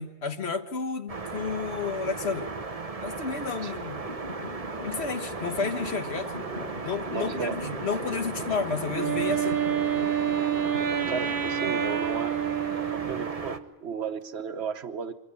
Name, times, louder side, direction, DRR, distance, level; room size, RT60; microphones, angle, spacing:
voice 1, 0.0-2.5 3.0-4.0 4.8-6.3 6.8-9.6, left 5 dB, 85° left, 7 dB, 1.7 m, -31 dB
sound 1, 1.1-13.6, right 4 dB, 35° right, 1.2 m, -36 dB
sound 2, 3.8-11.7, left 1 dB, 40° left, 5.6 m, -40 dB
voice 2, 7.1-7.8 11.1-12.4 12.9-15.1, right 6 dB, 90° right, 9 dB, 1.4 m, -34 dB
Wind instrument woodwind instrument, 8.9-13.6, right 9 dB, 55° right, 1.2 m, -28 dB
24.0 x 16.0 x 9.8 m, 0.97 s
omnidirectional pair, 1.1 m